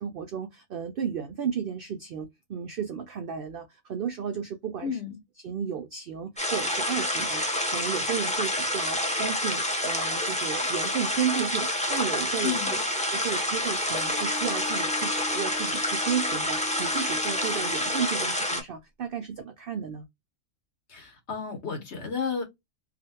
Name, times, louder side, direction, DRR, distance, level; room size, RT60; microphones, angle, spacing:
voice 1, 0.0-5.0 5.4-12.6 13.1-20.0, right 7 dB, 70° right, 0.5 m, -33 dB
voice 2, 4.8-5.2 12.4-12.8 20.9-22.4, left 6 dB, 55° left, 1.4 m, -32 dB
sound 1, 6.4-18.6, left 1 dB, 10° left, 0.4 m, -28 dB
Bowed string instrument, 13.8-18.2, left 4 dB, 85° left, 1.3 m, -41 dB
2.9 x 2.4 x 2.7 m
omnidirectional pair, 1.4 m